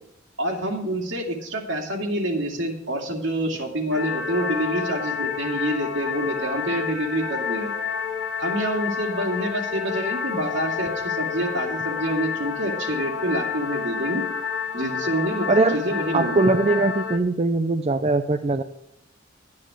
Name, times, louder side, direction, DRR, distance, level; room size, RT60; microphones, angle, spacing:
voice 1, 0.4-7.7 8.4-14.2 14.7-16.5, right 1 dB, 75° right, 1 dB, 2.4 m, -27 dB
sound 1, 3.9-17.2, left 6 dB, 85° left, 1.1 m, -29 dB
voice 2, 15.5-15.8 16.1-18.6, right 3 dB, 35° right, 7 dB, 0.5 m, -21 dB
12.0 x 9.6 x 4.9 m, 0.76 s
head